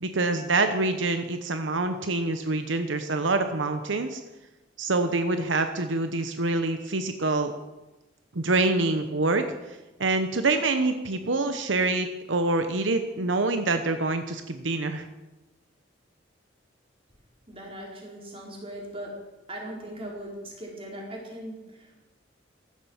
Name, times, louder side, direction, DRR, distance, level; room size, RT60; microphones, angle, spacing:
voice 1, 0.0-4.2 4.8-7.5 8.3-15.1, right 3 dB, 80° right, 8 dB, 1.0 m, -26 dB
voice 2, 17.5-22.0, right 1 dB, 30° right, -2 dB, 4.5 m, -39 dB
15.0 x 12.0 x 7.2 m, 1.1 s
head